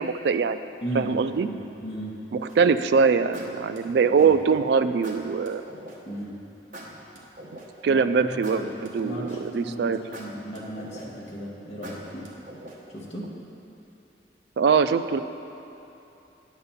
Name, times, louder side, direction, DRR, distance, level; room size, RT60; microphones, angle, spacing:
voice 1, 0.0-0.7 0.9-1.5 2.6-5.6 7.8-8.6 8.9-10.0 14.6-15.2, right 5 dB, 70° right, 11 dB, 0.3 m, -22 dB
voice 2, 0.8-1.1 1.4-2.1 4.2-4.3 6.0-6.4 7.8-8.7 9.0-12.3 12.9-13.3, right 1 dB, 35° left, -6 dB, 1.3 m, -35 dB
sound 1, 2.5-2.8 3.3-4.5 5.0-6.0 6.7-7.9 8.4-9.6 10.1-11.3 11.8-13.0, right 1 dB, 50° right, 1.0 m, -42 dB
9.5 x 4.1 x 7.1 m, 2.9 s
head